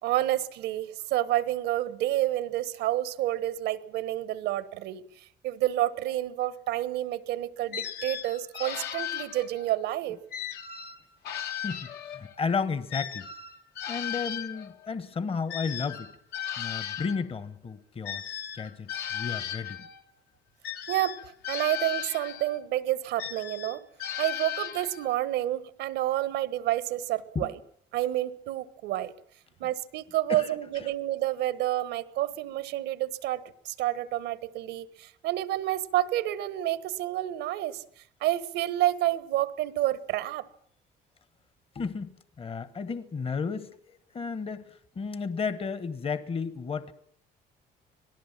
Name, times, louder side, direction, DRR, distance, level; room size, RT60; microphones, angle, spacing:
voice 1, 0.0-10.2 20.9-21.2 21.5-23.8 24.2-27.6 27.9-29.1 29.6-40.5, right 14 dB, 85° right, 16 dB, 1.3 m, -29 dB
sound 1, 7.7-9.8 10.3-12.4 12.9-17.2 18.0-20.0 20.6-22.6 23.2-25.2, left 10 dB, 75° left, 2.0 m, -36 dB
voice 2, 11.6-13.3 13.9-16.1 16.6-18.2 18.5-19.9 27.3-27.5 30.3-30.5 41.7-43.7 44.1-46.9, left 5 dB, 35° left, 14 dB, 1.3 m, -33 dB
25.5 x 18.5 x 7.4 m, 0.64 s
cardioid pair, 110°, 17 cm